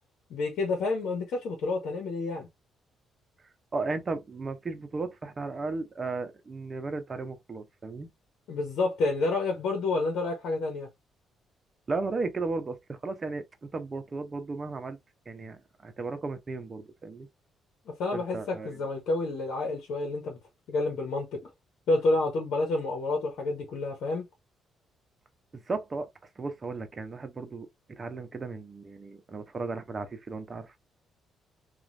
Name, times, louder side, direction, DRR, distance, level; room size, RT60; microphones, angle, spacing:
voice 1, 0.3-2.5 8.5-10.9 18.0-20.4 20.7-21.4 21.9-24.2, left 3 dB, 75° left, 1.1 m, -29 dB
voice 2, 3.7-8.1 11.9-15.0 15.3-17.3 18.1-18.7 25.5-26.1 26.4-30.8, right 3 dB, 35° right, 0.7 m, -35 dB
3.0 x 2.4 x 2.6 m
cardioid pair, 90°, 0 cm